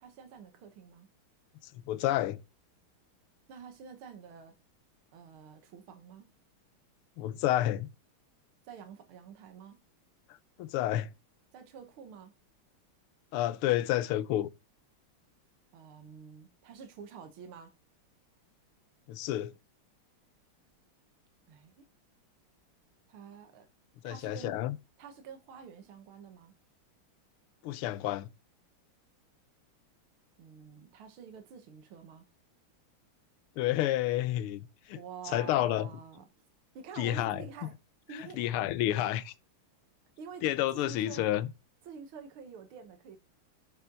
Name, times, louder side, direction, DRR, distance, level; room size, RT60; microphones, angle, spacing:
voice 1, 0.0-1.1 3.5-4.5 5.1-6.3 8.7-9.8 11.5-12.3 15.7-17.7 21.5-21.9 23.1-23.7 24.0-24.6 25.0-26.5 30.4-32.3 35.0-36.3 36.8-37.7 38.1-38.5 40.2-41.3 41.9-43.2, right 6 dB, 75° right, 2.1 m, -48 dB
voice 2, 1.9-2.4 7.2-7.9 10.6-11.1 13.3-14.5 19.1-19.5 24.0-24.8 27.6-28.3 33.6-35.0 35.3-35.9 37.0-37.4 38.2-39.3 40.4-41.5, left 13 dB, 85° left, 1.6 m, -30 dB
7.0 x 6.9 x 3.9 m
omnidirectional pair, 2.4 m